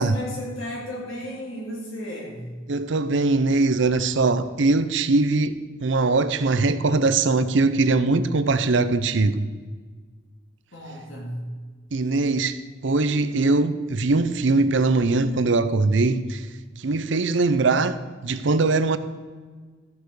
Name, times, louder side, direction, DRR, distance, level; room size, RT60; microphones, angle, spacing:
voice 1, 0.0-2.5 10.7-11.4, equal, 80° left, 3.3 m, -34 dB
voice 2, 2.7-9.4 11.9-16.5 16.8-18.0 18.2-19.0, right 3 dB, 65° right, 0.6 m, -21 dB
14.0 x 6.8 x 4.8 m
head